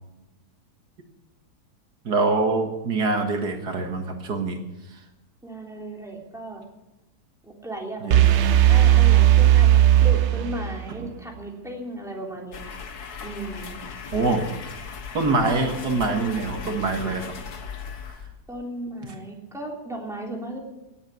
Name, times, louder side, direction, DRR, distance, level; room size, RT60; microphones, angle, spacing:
voice 1, 2.1-4.6 8.0-8.6 11.0-11.1 14.1-14.6 15.1-17.3, right 3 dB, 80° right, 4 dB, 2.2 m, -25 dB
voice 2, 5.4-6.6 7.4-8.3 8.7-9.7 10.0-12.6 13.2-13.8 15.4-15.8 18.5-20.6, right 1 dB, ahead, -1 dB, 3.4 m, -35 dB
sound 1, 8.1-11.0, right 12 dB, 60° right, 0.8 m, -16 dB
sound 2, 12.5-18.6, left 6 dB, 70° left, 1.8 m, -37 dB
18.5 x 8.2 x 8.3 m, 0.98 s
omnidirectional pair, 1.7 m